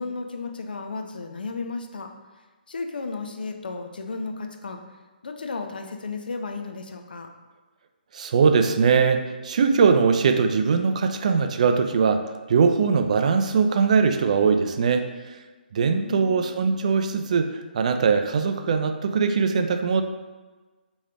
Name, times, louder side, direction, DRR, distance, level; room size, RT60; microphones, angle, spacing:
voice 1, 0.0-2.1 2.7-4.8 5.2-7.3 15.9-16.6, left 3 dB, 65° left, 5 dB, 0.5 m, -34 dB
voice 2, 8.1-15.4 15.7-20.0, right 5 dB, 45° right, 7 dB, 0.3 m, -21 dB
3.2 x 3.0 x 3.5 m, 1.3 s
figure-of-eight pair, 135°, 5 cm